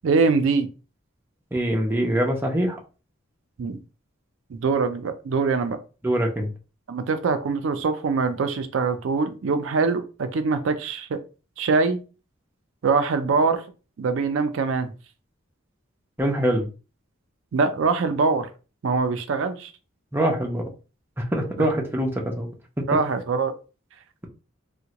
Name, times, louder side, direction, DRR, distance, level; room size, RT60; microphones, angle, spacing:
voice 1, 0.0-0.7 3.6-3.8 4.5-5.8 6.9-11.2 11.6-12.0 12.8-13.6 14.0-14.9 17.5-18.5 18.8-19.7 21.6-21.7 22.9-23.5, right 4 dB, 70° right, 9 dB, 0.4 m, -23 dB
voice 2, 1.5-2.8 6.0-6.5 16.2-16.7 20.1-20.7 21.2-22.5 22.8-22.9, right 1 dB, 10° right, 0 dB, 0.5 m, -24 dB
3.6 x 2.1 x 2.9 m, 0.33 s
head